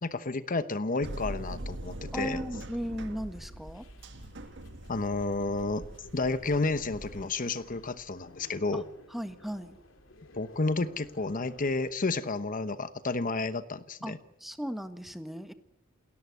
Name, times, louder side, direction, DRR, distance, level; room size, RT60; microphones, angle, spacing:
voice 1, 0.0-2.4 4.9-5.8 6.1-8.8 10.3-14.2, left 3 dB, 45° left, 12 dB, 1.0 m, -31 dB
sound 1, 1.0-7.3, right 1 dB, 65° right, 1.8 m, -42 dB
voice 2, 2.1-3.8 9.1-9.8 14.0-14.1 14.4-15.5, equal, ahead, 9 dB, 1.5 m, -36 dB
sound 2, 3.0-11.9, left 1 dB, 70° left, 3.1 m, -55 dB
29.0 x 13.5 x 9.5 m, 0.86 s
head